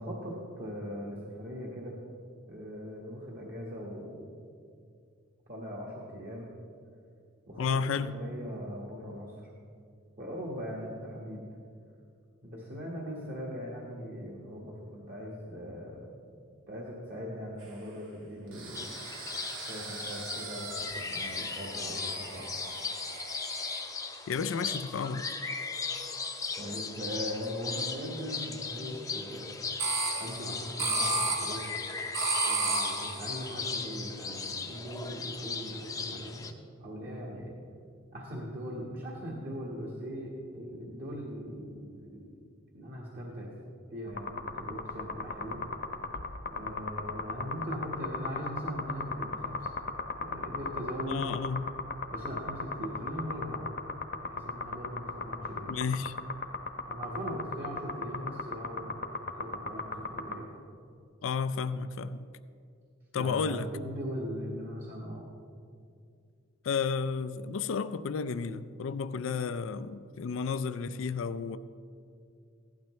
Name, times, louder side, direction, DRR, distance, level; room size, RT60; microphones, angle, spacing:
voice 1, 0.0-2.0 2.5-4.3 5.5-6.5 7.5-7.8 8.1-9.5 10.2-11.4 12.4-16.1 16.7-18.9 19.6-22.5 26.6-29.5 30.2-31.7 32.5-36.5 36.8-37.6 38.1-42.4 42.7-43.5 43.9-45.6 46.5-49.7 50.2-51.2 52.1-53.7 54.2-55.8 56.9-59.1 59.4-60.5 63.1-65.3, equal, 45° right, 1.6 m, -40 dB
voice 2, 7.6-8.1 24.3-25.3 51.1-51.7 55.6-56.2 61.2-62.3 63.1-63.7 66.6-71.6, left 5 dB, 80° left, 0.4 m, -32 dB
sound 1, 18.5-24.0 24.7-26.3 29.8-33.6, right 3 dB, 85° right, 2.0 m, -35 dB
sound 2, 18.7-36.5, left 4 dB, 15° left, 0.6 m, -38 dB
sound 3, 44.1-60.4, left 4 dB, 50° left, 0.9 m, -35 dB
15.5 x 12.0 x 3.2 m
head